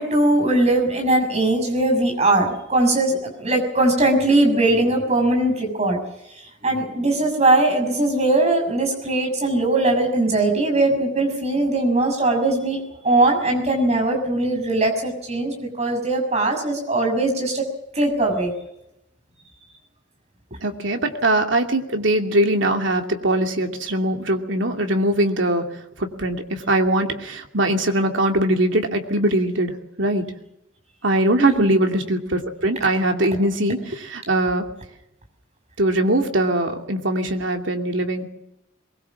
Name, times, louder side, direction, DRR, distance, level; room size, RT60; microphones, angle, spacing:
voice 1, 0.0-6.0 6.6-17.7 17.9-18.5 31.4-31.7, right 2 dB, 35° right, 2 dB, 6.5 m, -20 dB
voice 2, 20.6-25.6 26.0-30.2 31.0-34.7 35.8-38.3, right 1 dB, 80° right, 4 dB, 2.7 m, -21 dB
23.0 x 21.0 x 7.3 m, 0.85 s
head